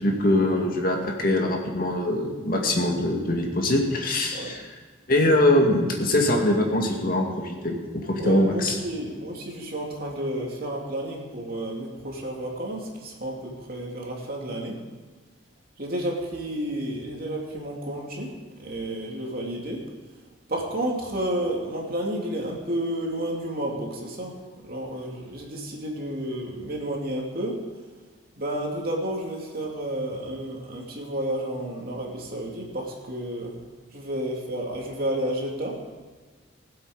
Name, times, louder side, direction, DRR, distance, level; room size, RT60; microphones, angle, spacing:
voice 1, 0.0-4.7 5.1-7.8 8.0-8.8, left 1 dB, 45° left, 1 dB, 2.2 m, -23 dB
voice 2, 8.2-14.8 15.8-18.3 18.6-19.8 20.5-24.3 24.6-27.6 28.4-33.6 33.9-35.8, right 1 dB, 50° right, -1 dB, 2.7 m, -31 dB
20.0 x 8.1 x 5.1 m, 1.5 s
head